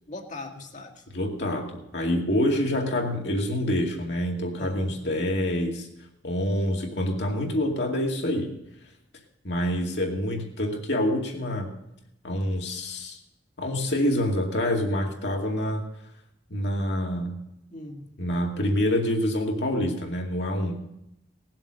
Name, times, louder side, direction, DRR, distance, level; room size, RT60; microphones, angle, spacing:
voice 1, 0.1-1.0 4.6-5.0 17.7-18.1, left 2 dB, 40° left, 2 dB, 1.9 m, -40 dB
voice 2, 1.1-5.9 6.2-8.5 9.4-11.7 12.2-13.2 13.6-15.9 16.5-17.4 18.2-20.8, left 1 dB, 65° left, 1 dB, 2.4 m, -26 dB
19.0 x 7.5 x 6.4 m, 0.85 s
head